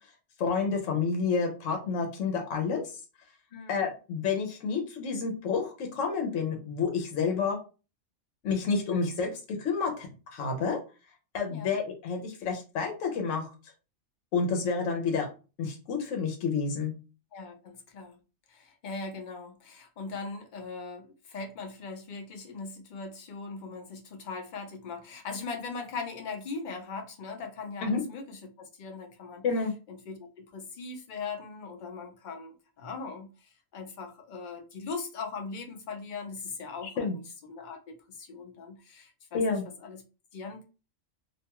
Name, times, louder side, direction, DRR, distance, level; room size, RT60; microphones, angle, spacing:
voice 1, 0.4-2.8 3.7-7.6 8.4-10.8 11.3-13.5 14.3-15.3 15.6-17.0 27.8-28.0 29.4-29.7 36.8-37.2 39.3-39.6, left 5 dB, 80° left, 1.0 m, -29 dB
voice 2, 3.5-3.9 11.5-11.7 17.3-18.2 18.5-29.4 29.9-37.2 37.5-40.0 40.3-40.6, left 4 dB, 50° left, 0.6 m, -40 dB
2.6 x 2.2 x 2.8 m
omnidirectional pair, 1.3 m